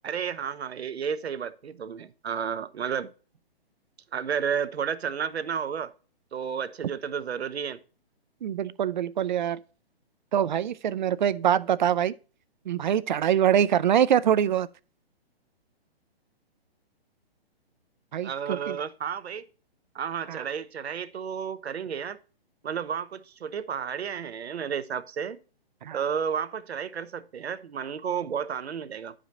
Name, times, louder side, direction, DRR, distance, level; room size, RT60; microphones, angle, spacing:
voice 1, 0.0-3.1 4.1-5.9 6.3-7.8 18.2-19.5 19.9-22.2 22.6-25.4 25.9-29.1, right 7 dB, 85° right, 0.9 m, -32 dB
voice 2, 8.4-9.6 10.3-12.1 12.7-14.7 18.1-18.8 20.3-20.4 25.8-26.0, right 9 dB, 50° right, 0.5 m, -24 dB
10.0 x 5.0 x 3.9 m
hypercardioid pair, 155°, 31 cm